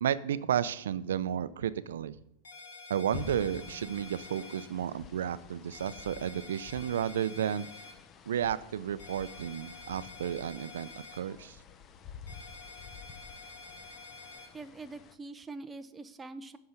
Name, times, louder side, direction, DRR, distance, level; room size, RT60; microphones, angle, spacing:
voice 1, 0.0-2.1 2.9-7.7 8.3-11.6, right 9 dB, 85° right, 15 dB, 0.4 m, -32 dB
sound 1, 2.4-4.6 5.7-7.9 9.0-11.2 12.3-14.5, left 3 dB, 85° left, 2.9 m, -48 dB
sound 2, 3.1-15.1, left 6 dB, 35° left, 0.7 m, -50 dB
voice 2, 14.5-16.6, right 3 dB, 15° right, 10 dB, 0.6 m, -44 dB
8.0 x 5.7 x 6.4 m, 0.80 s
hypercardioid pair, 120°, 0 cm